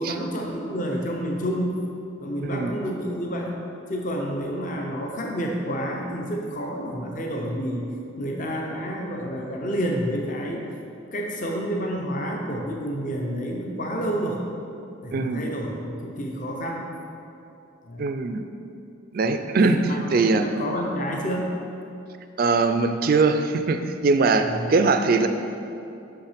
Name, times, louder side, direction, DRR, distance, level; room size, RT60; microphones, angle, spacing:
voice 1, 0.0-1.8 2.2-3.5 3.9-10.7 11.1-14.4 15.0-16.9 17.8-18.1 19.2-19.3 19.6-20.0 20.3-21.5 24.4-24.7, equal, 40° left, 0 dB, 0.7 m, -29 dB
voice 2, 15.1-15.4 18.0-18.4 19.1-20.5 22.4-25.3, right 3 dB, 45° right, 8 dB, 0.3 m, -21 dB
6.2 x 5.7 x 5.0 m, 2.7 s
head